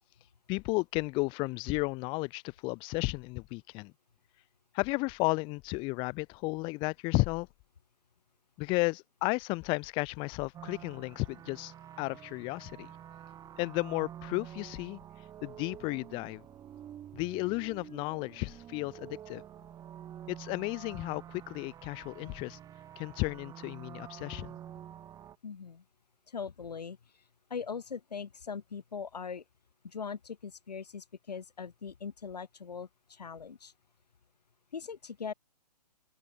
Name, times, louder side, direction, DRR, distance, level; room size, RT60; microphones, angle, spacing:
voice 1, 0.5-3.9 4.7-7.5 8.6-12.9 13.6-15.0 15.4-16.4 17.1-19.4 20.3-22.6 23.0-24.5, left 26 dB, 25° left, 0.9 m, -33 dB
sound 1, 10.5-25.4, right 10 dB, 15° right, 5.1 m, -48 dB
voice 2, 25.4-25.8 26.3-27.0 27.5-29.4 29.8-33.7 34.7-35.3, left 6 dB, 75° left, 3.6 m, -40 dB
hypercardioid pair, 135°, 21 cm